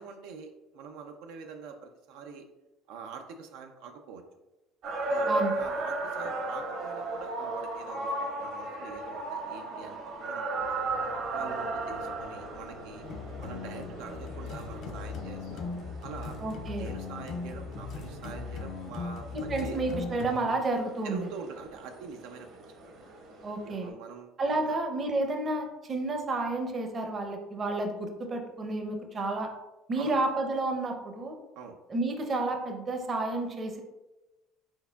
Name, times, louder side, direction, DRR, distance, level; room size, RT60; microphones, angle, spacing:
voice 1, 0.0-2.5 2.9-4.2 5.1-10.6 11.3-13.0 13.4-15.6 16.0-16.4 16.8-19.8 21.0-22.6 23.6-24.8 30.0-30.2 31.6-31.8, right 5 dB, 80° right, 4 dB, 0.4 m, -44 dB
sound 1, 4.8-23.9, right 2 dB, 60° right, 1.1 m, -37 dB
sound 2, 10.6-15.9, left 1 dB, 80° left, 1.2 m, -48 dB
sound 3, 13.0-20.5, left 4 dB, 50° left, 0.4 m, -39 dB
voice 2, 16.4-16.9 19.3-21.2 23.4-23.9 24.4-29.5 29.9-31.4 31.9-33.8, right 2 dB, 30° right, 4 dB, 0.6 m, -30 dB
4.5 x 4.3 x 2.3 m, 1.0 s
cardioid pair, 120°, 0 cm